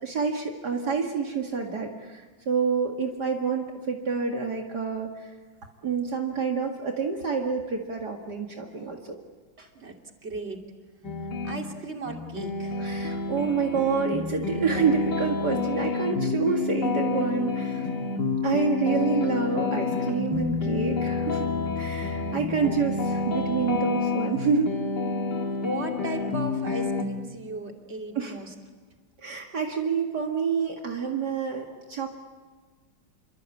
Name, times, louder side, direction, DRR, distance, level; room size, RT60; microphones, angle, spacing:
voice 1, 0.0-5.3 5.8-9.2 9.6-9.7 12.8-17.9 18.4-24.7 28.2-28.4 29.2-32.1, right 5 dB, 60° right, 1 dB, 2.6 m, -28 dB
voice 2, 10.2-10.6 11.4-13.0 22.6-22.8 25.6-28.5, right 2 dB, 35° right, 2 dB, 3.1 m, -36 dB
sound 1, 11.0-11.6 12.1-27.0, left 4 dB, 65° left, 2.8 m, -29 dB
28.0 x 24.0 x 8.5 m, 1.4 s
omnidirectional pair, 2.0 m